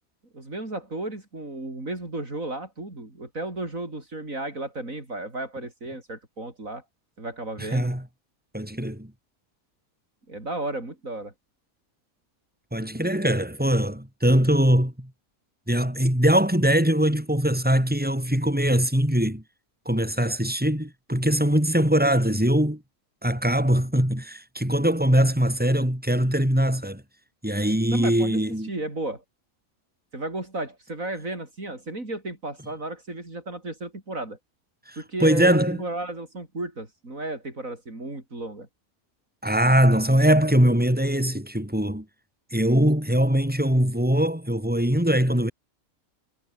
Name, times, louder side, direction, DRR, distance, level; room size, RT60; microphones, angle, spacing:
voice 1, 0.3-6.8 7.2-7.9 10.3-11.3 27.9-29.2 30.1-34.4 35.0-38.7, right 2 dB, 65° right, 6.2 m, -34 dB
voice 2, 7.6-8.1 8.5-9.1 12.7-15.1 15.7-19.4 19.9-22.8 23.2-27.0 27.4-28.7 34.9-35.8 39.4-42.1 42.5-45.5, equal, 5° right, 6.0 m, -22 dB
omnidirectional pair, 1.5 m